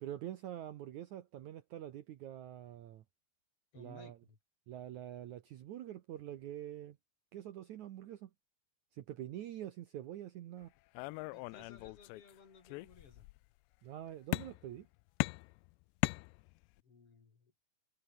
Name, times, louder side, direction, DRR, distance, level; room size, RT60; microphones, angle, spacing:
voice 1, 0.0-3.0 3.8-4.2 4.7-7.0 7.3-8.3 8.9-10.7 13.8-14.9, right 12 dB, 80° right, 1.7 m, -45 dB
voice 2, 3.7-4.4 11.3-13.3 16.8-17.5, left 5 dB, 35° left, 4.3 m, -59 dB
sound 1, 10.9-12.3 12.6-13.4 14.3-14.8 15.2-16.8, left 24 dB, 85° left, 2.8 m, -38 dB
omnidirectional pair, 5.0 m